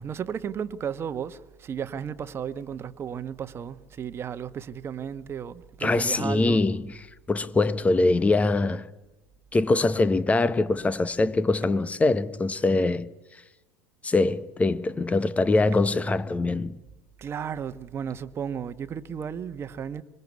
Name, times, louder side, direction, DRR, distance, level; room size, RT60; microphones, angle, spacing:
voice 1, 0.0-6.6 17.2-20.0, right 8 dB, 35° right, 1.4 m, -34 dB
voice 2, 5.8-6.9 7.3-8.9 9.5-13.1 14.0-16.8, left 2 dB, 20° left, 1.3 m, -23 dB
26.0 x 22.5 x 8.3 m
hypercardioid pair, 75°, 8 cm